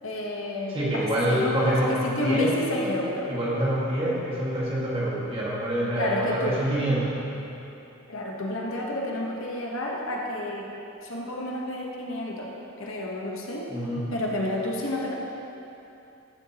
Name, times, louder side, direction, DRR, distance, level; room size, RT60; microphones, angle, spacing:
voice 1, 0.0-3.3 6.0-6.6 8.1-10.7 11.0-13.7 14.1-15.1, left 1 dB, 70° left, -2 dB, 1.2 m, -30 dB
voice 2, 0.7-2.5 3.3-7.2 13.7-14.1, right 1 dB, 25° right, -7 dB, 2.0 m, -26 dB
14.0 x 7.7 x 3.0 m, 2.9 s
head